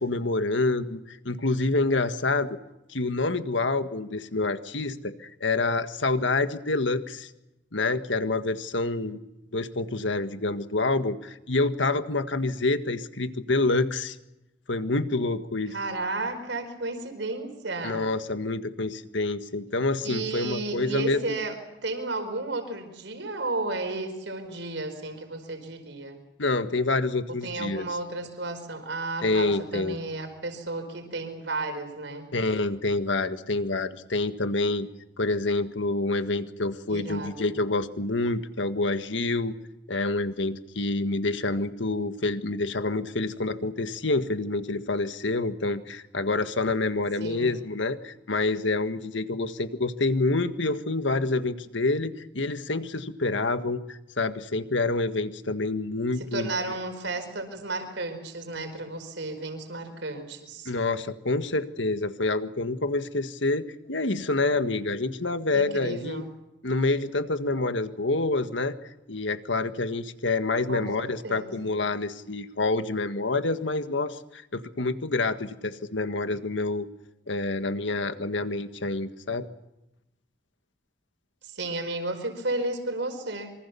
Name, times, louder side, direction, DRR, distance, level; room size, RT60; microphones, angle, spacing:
voice 1, 0.0-2.6 2.9-7.3 7.7-9.2 9.5-14.2 14.7-15.8 17.8-21.2 26.4-27.8 29.2-30.0 32.3-34.9 35.2-39.5 39.9-56.5 60.6-66.2 66.6-68.8 69.1-76.9 77.3-79.5, left 2 dB, 80° left, 9 dB, 1.7 m, -27 dB
voice 2, 15.7-18.1 20.0-21.6 21.8-26.2 27.4-32.3 36.9-37.5 47.2-47.6 56.2-60.7 65.5-66.3 70.7-71.7 81.4-83.5, right 2 dB, 70° right, 7 dB, 4.7 m, -33 dB
26.5 x 24.5 x 7.0 m, 0.92 s
head